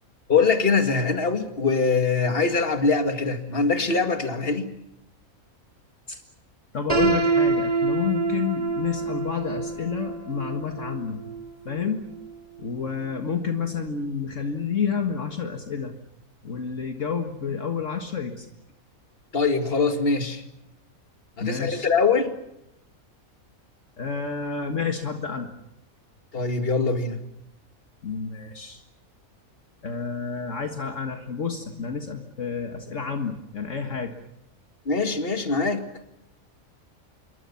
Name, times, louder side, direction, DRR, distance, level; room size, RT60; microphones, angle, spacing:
voice 1, 0.3-4.7 19.3-20.4 21.4-22.3 26.3-27.2 34.9-35.8, left 4 dB, 40° left, 7 dB, 2.4 m, -23 dB
voice 2, 6.7-11.2 11.7-12.1 12.6-16.0 16.4-18.5 21.4-21.9 24.0-25.5 28.0-28.8 29.8-34.2, left 6 dB, 60° left, 5 dB, 2.1 m, -29 dB
Piano, 6.9-12.8, right 3 dB, 25° right, 6.3 m, -27 dB
27.5 x 23.5 x 7.1 m, 0.82 s
omnidirectional pair, 1.5 m